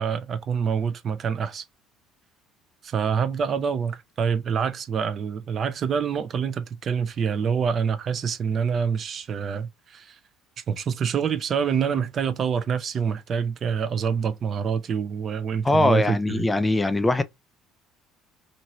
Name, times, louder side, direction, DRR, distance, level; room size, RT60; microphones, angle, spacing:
voice 1, 0.0-1.6 2.8-10.2 10.7-16.5, right 6 dB, 50° right, 0.6 m, -26 dB
voice 2, 15.6-17.2, left 2 dB, 15° left, 0.4 m, -21 dB
2.9 x 2.6 x 2.7 m
supercardioid pair, 75°, 0 cm